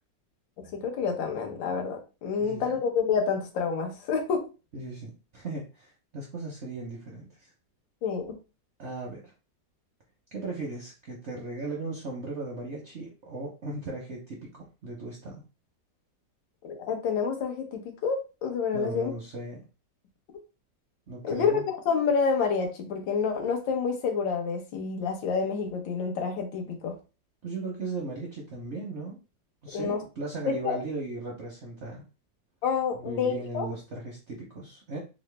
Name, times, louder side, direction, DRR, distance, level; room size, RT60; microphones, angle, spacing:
voice 1, 0.7-4.4 8.0-8.3 16.6-19.1 21.2-26.9 29.7-30.0 30.5-30.8 32.6-33.7, left 5 dB, 85° left, 3 dB, 1.6 m, -28 dB
voice 2, 4.7-7.5 8.8-9.3 10.3-15.4 18.7-19.6 21.1-21.6 27.4-29.2 29.6-32.0 33.0-35.0, right 2 dB, 65° right, -2 dB, 0.7 m, -37 dB
3.9 x 2.0 x 3.2 m, 0.31 s
omnidirectional pair, 2.0 m